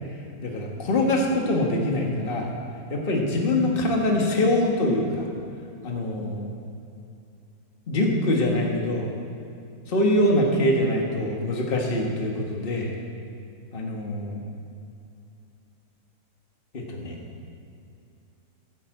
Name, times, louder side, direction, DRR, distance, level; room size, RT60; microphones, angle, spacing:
voice 1, 0.4-2.5 2.9-5.3 5.8-6.5 7.9-9.1 9.9-12.9 13.7-14.4 16.7-17.2, left 1 dB, 35° left, 0 dB, 1.6 m, -24 dB
10.0 x 9.7 x 7.7 m, 2.6 s
omnidirectional pair, 1.8 m